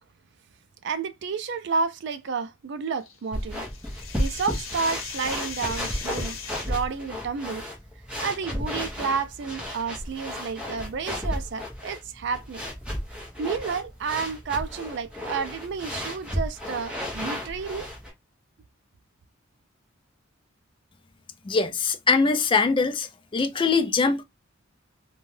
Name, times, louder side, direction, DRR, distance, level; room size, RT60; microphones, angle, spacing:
voice 1, 0.8-3.7 4.1-6.4 6.7-7.6 8.2-12.6 13.4-17.9, right 5 dB, 55° right, 0.3 m, -30 dB
sound 1, 3.0-6.8, left 6 dB, 80° left, 0.8 m, -39 dB
sound 2, 3.3-18.1, equal, 5° right, 0.8 m, -33 dB
voice 2, 21.4-24.2, left 4 dB, 25° left, 0.3 m, -22 dB
2.6 x 2.2 x 3.1 m
head